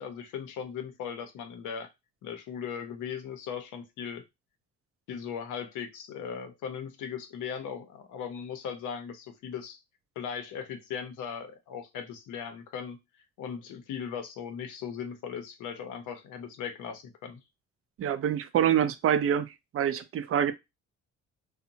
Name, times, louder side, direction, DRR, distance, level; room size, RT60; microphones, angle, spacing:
voice 1, 0.0-1.9 2.2-4.2 5.1-9.8 10.2-13.0 13.4-17.4, left 7 dB, 80° left, 0.6 m, -38 dB
voice 2, 18.0-20.5, right 9 dB, 50° right, 0.4 m, -26 dB
2.8 x 2.1 x 2.6 m
cardioid pair, 90°, 30 cm